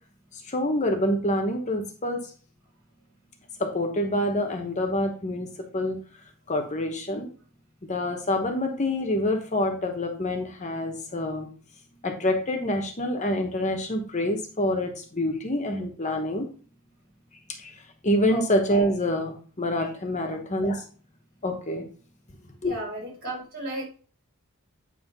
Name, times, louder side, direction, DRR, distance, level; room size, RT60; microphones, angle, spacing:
voice 1, 0.3-2.2 3.6-6.0 6.5-7.3 7.9-11.5 12.0-16.5 17.6-20.8 21.4-21.8 22.6-22.8, left 1 dB, 35° left, 4 dB, 1.1 m, -27 dB
voice 2, 22.6-23.9, right 1 dB, 45° right, -2 dB, 4.2 m, -34 dB
9.0 x 3.3 x 5.3 m, 0.40 s
head